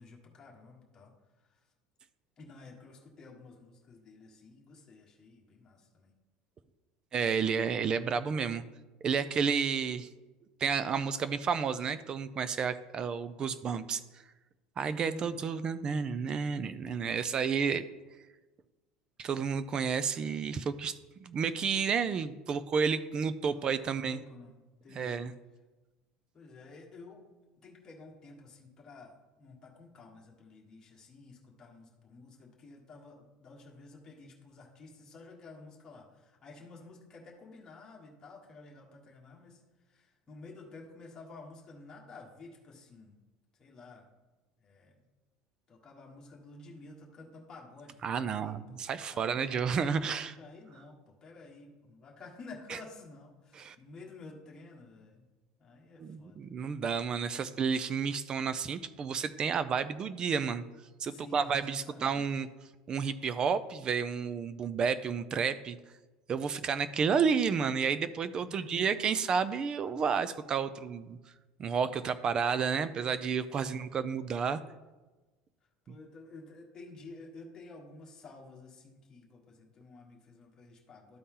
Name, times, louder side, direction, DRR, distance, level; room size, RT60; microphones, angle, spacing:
voice 1, 0.0-1.5 2.4-6.1 15.0-15.5 23.5-25.2 26.3-27.2 27.6-39.6 39.9-43.1 43.6-44.1 44.6-45.0 45.7-49.8 50.4-55.3 55.6-56.4 61.1-62.4 68.4-69.0 73.5-73.8 75.8-81.2, left 3 dB, 25° left, -2 dB, 1.6 m, -52 dB
voice 2, 7.1-8.6 9.0-10.1 10.6-14.0 14.8-17.8 19.2-24.2 24.9-25.3 48.0-50.4 53.6-53.8 56.0-60.6 61.0-62.5 62.9-65.8 66.3-71.2 71.6-74.6, right 6 dB, 30° right, 14 dB, 0.4 m, -31 dB
12.5 x 4.2 x 3.8 m, 1.2 s
cardioid pair, 150°, 3 cm